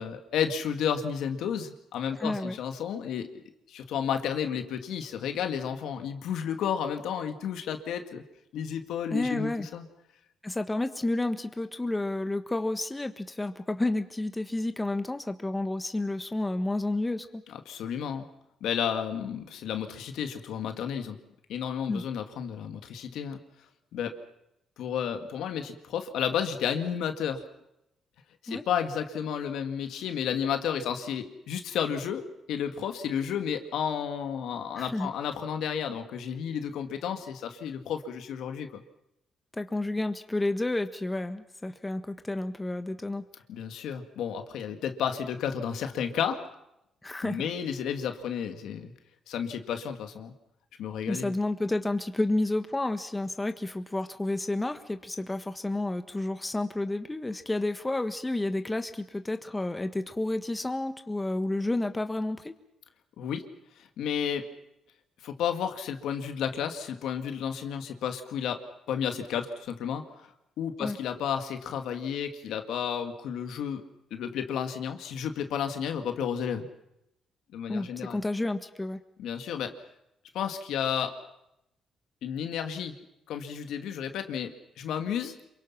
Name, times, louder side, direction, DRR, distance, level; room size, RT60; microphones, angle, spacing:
voice 1, 0.0-3.3 3.7-8.2 8.5-9.8 17.5-18.3 18.6-21.2 21.5-23.4 23.9-24.1 24.8-27.4 28.4-38.8 43.5-46.5 47.2-48.9 49.3-50.3 50.8-51.3 63.2-63.5 63.8-64.5 65.2-70.3 70.6-73.8 74.1-76.7 77.5-78.2 79.2-79.7 80.3-81.1 82.2-83.0 83.3-85.4, left 8 dB, 80° left, 6 dB, 2.0 m, -32 dB
voice 2, 2.2-2.6 9.1-9.7 10.4-17.4 21.9-22.0 28.5-28.6 34.8-35.1 39.5-43.2 47.0-47.5 51.1-62.5 70.8-71.0 77.7-79.0, left 2 dB, 15° left, 8 dB, 1.4 m, -30 dB
27.5 x 23.5 x 5.9 m, 0.85 s
cardioid pair, 90°, 0 cm